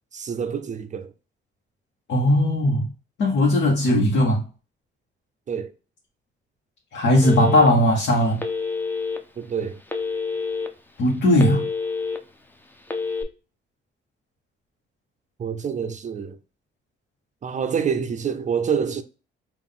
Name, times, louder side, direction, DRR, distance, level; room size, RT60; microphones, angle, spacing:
voice 1, 0.1-1.1 5.5-5.7 9.4-9.8 15.4-16.4 17.4-19.0, right 7 dB, 40° right, 0.5 m, -27 dB
voice 2, 2.1-2.9 3.2-4.4 6.9-8.4 11.0-11.7, left 1 dB, 65° left, 1.1 m, -18 dB
Telephone, 7.2-7.9 8.4-9.2 9.9-10.7 11.1-12.2 12.8-13.2, left 4 dB, 10° left, 0.6 m, -27 dB
3.7 x 2.5 x 3.7 m
cardioid pair, 90°, 20 cm